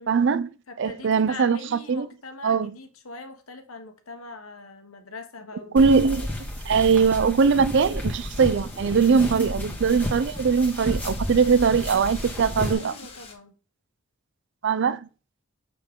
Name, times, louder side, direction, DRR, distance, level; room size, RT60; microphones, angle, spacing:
voice 1, 0.1-0.5 0.8-2.1 2.4-2.7 5.7-6.3 6.7-12.9 14.6-15.0, right 5 dB, 60° right, 0.4 m, -21 dB
voice 2, 0.7-6.0 12.7-13.6 14.9-15.0, left 3 dB, 90° left, 1.3 m, -42 dB
sound 1, 5.8-12.7, left 1 dB, 10° left, 1.7 m, -32 dB
Wind, 8.3-13.3, left 4 dB, 30° left, 1.9 m, -46 dB
7.1 x 6.7 x 3.7 m
head